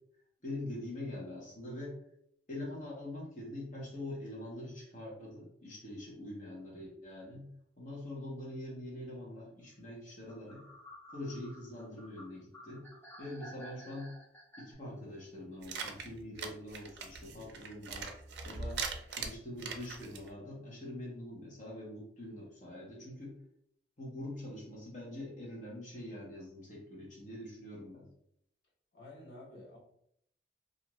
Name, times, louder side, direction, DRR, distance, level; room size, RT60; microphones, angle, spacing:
voice 1, 0.4-2.0 2.5-7.5 7.8-10.6 11.1-12.8 13.2-14.1 14.6-18.1 18.4-18.8 19.1-23.4 24.0-28.1, left 1 dB, 45° left, -4 dB, 0.9 m, -44 dB
sound 1, 10.3-14.7, equal, 15° left, 0.7 m, -53 dB
sound 2, 15.6-20.3, right 5 dB, 75° right, 0.4 m, -41 dB
voice 2, 28.9-29.8, left 1 dB, 70° left, -4 dB, 1.0 m, -51 dB
2.5 x 2.4 x 3.0 m, 0.71 s
head